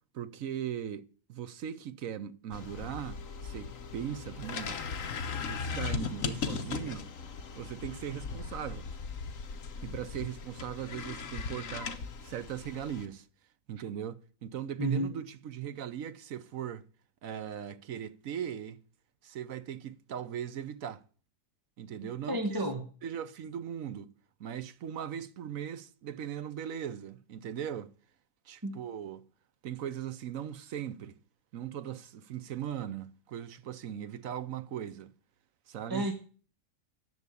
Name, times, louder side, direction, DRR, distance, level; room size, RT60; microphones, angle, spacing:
voice 1, 0.1-4.9 5.3-7.1 7.6-8.9 9.8-11.9 12.2-13.3 13.7-16.9 17.2-18.8 19.2-21.0 21.8-22.6 23.0-24.1 24.4-27.9 28.5-29.3 29.6-31.2 31.5-35.1 35.7-36.0, right 9 dB, 70° right, 1.1 m, -39 dB
sound 1, 2.5-13.1, left 5 dB, 65° left, 1.5 m, -38 dB
voice 2, 14.8-15.1 22.3-22.9 28.6-28.8 35.9-36.1, right 2 dB, 15° right, 1.2 m, -30 dB
10.5 x 7.2 x 8.3 m
omnidirectional pair, 1.5 m